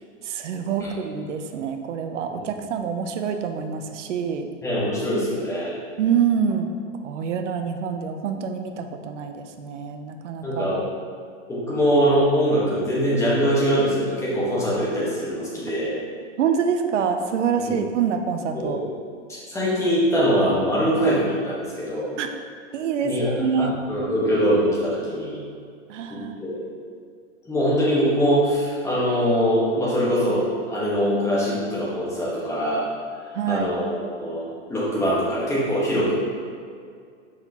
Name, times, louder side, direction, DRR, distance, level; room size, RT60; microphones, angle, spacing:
voice 1, 0.2-4.5 6.0-6.7 7.0-10.8 16.4-18.8 22.2-22.3 22.7-23.8 25.9-26.4 33.3-33.7, right 7 dB, 65° right, 6 dB, 0.7 m, -26 dB
voice 2, 4.6-5.7 10.4-10.8 11.5-16.0 17.6-17.8 18.5-18.8 19.3-22.1 23.0-23.3 23.6-25.4 26.1-26.6 27.5-32.9 33.5-33.9 34.2-36.1, equal, 5° left, -8 dB, 1.4 m, -23 dB
6.6 x 5.9 x 2.9 m, 2.2 s
hypercardioid pair, 150°, 38 cm